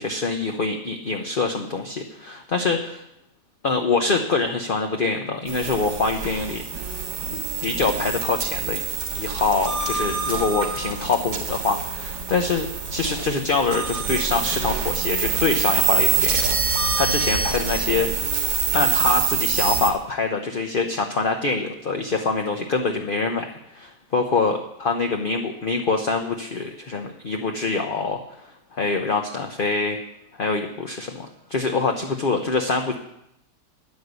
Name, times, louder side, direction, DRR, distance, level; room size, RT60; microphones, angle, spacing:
voice 1, 0.0-3.0 3.6-6.9 7.3-8.8 9.1-18.3 18.7-28.2 28.7-30.0 30.3-32.9, left 4 dB, 40° left, 4 dB, 0.9 m, -25 dB
sound 1, 5.5-19.9, right 6 dB, 80° right, 2.4 m, -25 dB
10.5 x 10.0 x 8.1 m, 0.79 s
omnidirectional pair, 1.9 m